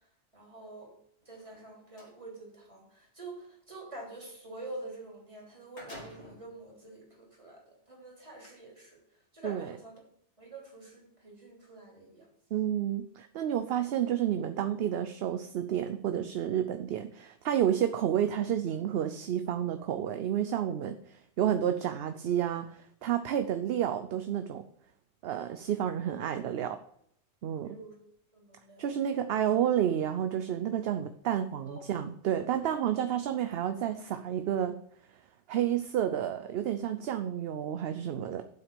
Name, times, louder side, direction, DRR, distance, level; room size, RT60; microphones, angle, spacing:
voice 1, 0.3-0.9 1.2-9.0 9.3-10.0 10.4-12.3 27.6-28.0 28.3-28.9 31.7-31.8, right 2 dB, 25° right, -3 dB, 3.3 m, -46 dB
sound 1, 1.2-2.2 5.0-5.1 5.4-6.5 7.2-7.3 8.2-8.5, left 1 dB, 70° left, 3.5 m, -49 dB
voice 2, 12.5-24.6 25.2-26.8 27.4-27.8 28.8-34.8 35.5-38.4, right 10 dB, 65° right, 9 dB, 0.8 m, -30 dB
7.9 x 6.0 x 6.7 m, 0.70 s
omnidirectional pair, 1.2 m